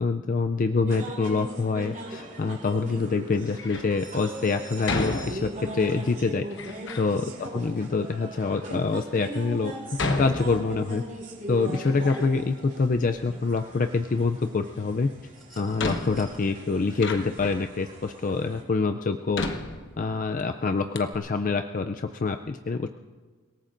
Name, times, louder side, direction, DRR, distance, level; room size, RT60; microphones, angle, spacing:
voice 1, 0.0-6.4 7.0-7.3 7.5-9.7 10.2-11.0 11.5-15.1 15.6-19.4 20.0-22.9, left 4 dB, 35° left, 7 dB, 0.4 m, -26 dB
sound 1, 0.9-18.6, right 1 dB, 40° right, 4.1 m, -40 dB
Door, 3.5-4.0 4.9-5.8 6.5-7.1 7.9-8.0 8.7-8.8 10.0-11.1 11.5-12.5 12.8-13.7 15.0-15.1 15.8-17.7 18.4-18.5 19.3-20.4 20.7-20.8 20.9-21.2, left 2 dB, 55° left, 1.1 m, -33 dB
sound 2, 15.3-16.4 17.9-18.0, equal, ahead, 3.7 m, -51 dB
29.5 x 18.5 x 2.6 m, 1.4 s
head